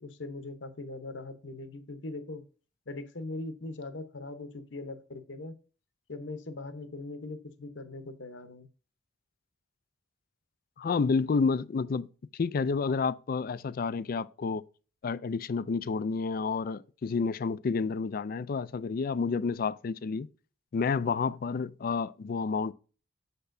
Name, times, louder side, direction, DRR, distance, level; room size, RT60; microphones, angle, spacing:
voice 1, 0.0-2.4 2.9-5.6 6.1-8.7, left 2 dB, 75° left, 0.9 m, -40 dB
voice 2, 10.8-12.1 12.3-14.6 15.0-20.3 20.7-22.7, left 4 dB, 50° left, 0.4 m, -30 dB
6.8 x 6.7 x 2.6 m
head